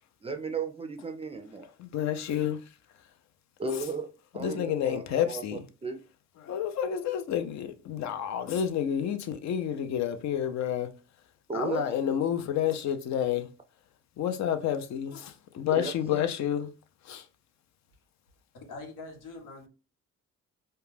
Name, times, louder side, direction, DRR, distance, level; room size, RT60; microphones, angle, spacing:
voice 1, 0.2-1.7 3.6-4.1 4.3-6.0 11.5-12.0 15.8-16.2, right 3 dB, 20° right, 0.3 m, -35 dB
voice 2, 1.8-2.6 4.4-5.6 6.4-10.9 11.5-13.5 14.2-16.7 17.0-17.2, left 9 dB, 65° left, 0.5 m, -29 dB
voice 3, 18.5-19.7, left 3 dB, 85° left, 0.9 m, -43 dB
2.3 x 2.1 x 3.2 m
cardioid pair, 90°, 30 cm